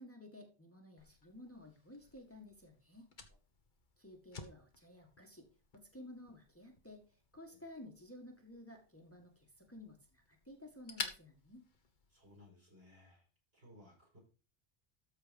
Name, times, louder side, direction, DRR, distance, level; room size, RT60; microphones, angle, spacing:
voice 1, 0.0-3.1 4.0-5.5 5.7-11.7, left 1 dB, 15° left, 2 dB, 1.7 m, -54 dB
Fire, 1.0-12.5, left 4 dB, 50° left, 1.4 m, -52 dB
voice 2, 12.1-13.3 13.5-14.2, left 1 dB, 70° right, -2 dB, 6.8 m, -61 dB
13.5 x 4.5 x 5.2 m, 0.35 s
omnidirectional pair, 1.0 m